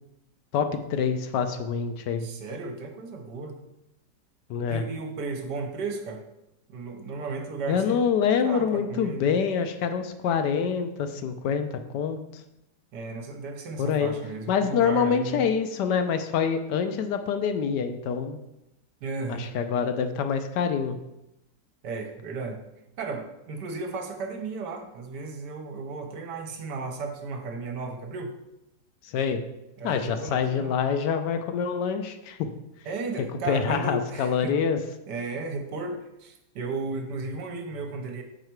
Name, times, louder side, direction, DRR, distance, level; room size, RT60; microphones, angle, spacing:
voice 1, 0.5-2.3 4.5-4.8 7.7-12.2 13.8-14.1 14.5-18.4 19.3-21.0 29.0-29.4 29.8-32.5 33.5-34.8, left 6 dB, 75° left, 8 dB, 1.2 m, -26 dB
voice 2, 2.2-3.6 4.7-6.2 6.7-8.1 8.4-9.3 12.9-15.4 19.0-19.5 21.8-22.6 23.0-28.3 29.8-30.8 32.8-34.6 35.1-38.2, right 3 dB, 70° right, 4 dB, 1.4 m, -34 dB
6.4 x 4.8 x 4.5 m, 0.88 s
omnidirectional pair, 1.9 m